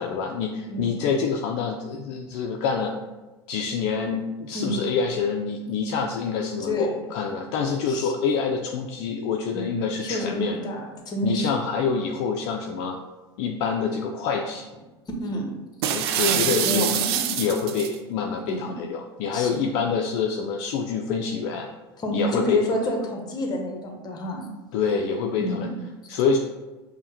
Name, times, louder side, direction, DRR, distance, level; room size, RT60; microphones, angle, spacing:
voice 1, 0.0-3.0 3.5-10.6 11.2-13.0 13.4-14.7 15.9-21.7 22.1-22.9 24.7-25.7 26.1-26.4, left 5 dB, 55° left, 3 dB, 0.4 m, -26 dB
voice 2, 0.7-1.0 4.5-4.8 6.6-7.1 7.9-8.1 9.5-11.5 15.2-15.5 16.2-17.3 18.5-18.8 19.3-19.7 22.0-24.5 25.4-25.7, left 1 dB, 30° left, 2 dB, 0.8 m, -29 dB
sound 1, 15.8-18.0, right 10 dB, 65° right, 0.4 m, -25 dB
5.4 x 2.1 x 2.9 m, 1.1 s
hypercardioid pair, 90°, 14 cm